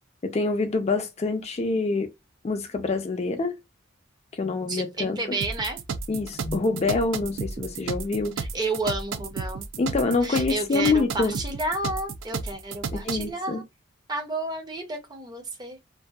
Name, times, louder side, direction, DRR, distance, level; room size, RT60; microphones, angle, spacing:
voice 1, 0.2-2.1 2.4-3.5 4.3-5.4 6.1-8.3 9.8-11.3 12.9-13.6, left 3 dB, 35° left, 0.4 m, -26 dB
voice 2, 4.7-5.8 8.4-9.6 10.2-13.6 14.1-15.8, right 2 dB, 20° right, 0.5 m, -31 dB
sound 1, 5.4-13.3, right 4 dB, 75° right, 0.4 m, -33 dB
2.6 x 2.2 x 2.2 m
head